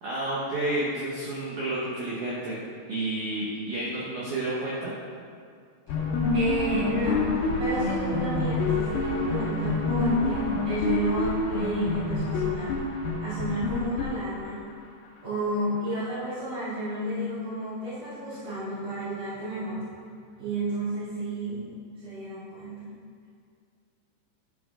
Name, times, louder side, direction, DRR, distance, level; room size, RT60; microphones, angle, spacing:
voice 1, 0.0-2.6 2.9-5.0, right 1 dB, 70° right, -6 dB, 1.9 m, -30 dB
sound 1, 5.9-14.7, left 3 dB, 70° left, 3.2 m, -27 dB
voice 2, 6.3-7.3 7.6-12.8 13.2-14.7 15.2-19.9 20.4-22.9, right 1 dB, 30° right, -15 dB, 2.9 m, -31 dB
12.0 x 7.5 x 3.7 m, 2.2 s
omnidirectional pair, 5.0 m